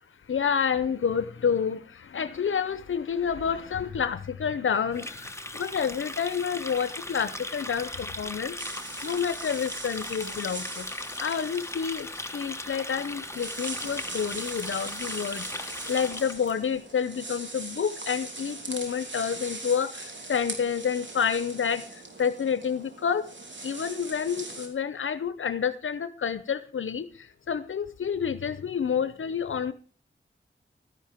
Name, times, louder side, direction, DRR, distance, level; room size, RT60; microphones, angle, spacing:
voice 1, 0.3-8.6 9.0-10.9 11.2-12.1 12.3-23.3 23.6-29.7, left 7 dB, 80° left, 13 dB, 0.7 m, -29 dB
Water tap faucet, 4.9-16.5, left 2 dB, 15° left, 1.3 m, -38 dB
sound 1, 8.6-24.7, right 2 dB, 65° right, 3.3 m, -41 dB
13.0 x 10.5 x 5.1 m, 0.38 s
cardioid pair, 55°, 20 cm